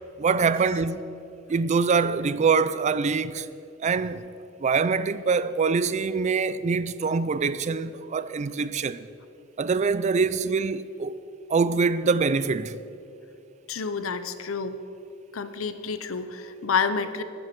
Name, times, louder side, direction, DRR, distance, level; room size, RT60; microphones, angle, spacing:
voice 1, 0.2-1.1 1.5-3.5 3.8-4.2 4.6-9.1 9.6-11.1 11.5-12.8, right 5 dB, 35° right, 0.4 m, -24 dB
voice 2, 13.7-14.8 15.3-17.2, left 5 dB, 85° left, 0.7 m, -29 dB
10.5 x 7.9 x 7.6 m
head